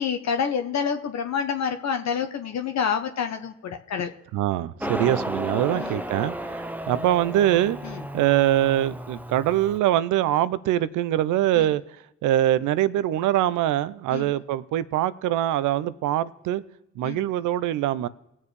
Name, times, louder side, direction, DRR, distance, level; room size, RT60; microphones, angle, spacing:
voice 1, 0.0-4.1 5.7-6.0 7.8-8.0 11.6-11.7 14.1-14.3 17.0-17.2, left 7 dB, 60° left, 1.0 m, -28 dB
voice 2, 4.3-7.8 8.1-11.8 12.2-16.6 17.0-18.1, right 13 dB, 70° right, 0.6 m, -23 dB
Motorcycle, 4.8-9.8, right 1 dB, 5° right, 0.7 m, -33 dB
20.0 x 7.2 x 3.2 m
supercardioid pair, 55°, 31 cm